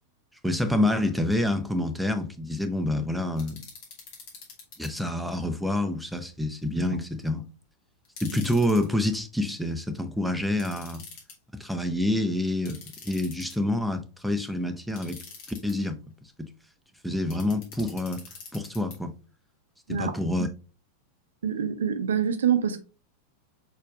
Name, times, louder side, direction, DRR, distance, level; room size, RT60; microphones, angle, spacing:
voice 1, 0.4-3.6 4.8-7.4 8.2-11.0 11.6-15.2 15.6-16.0 16.4-16.5 17.0-18.2 18.5-19.1 19.9-20.5, left 1 dB, ahead, 0.6 m, -27 dB
sound 1, 3.4-4.9 8.0-8.9 10.6-11.3 12.7-13.7 15.0-15.7 17.3-19.0, left 4 dB, 45° left, 1.8 m, -45 dB
voice 2, 21.4-22.8, right 8 dB, 65° right, 0.6 m, -25 dB
4.8 x 4.5 x 2.3 m
figure-of-eight pair, 90°, 0 cm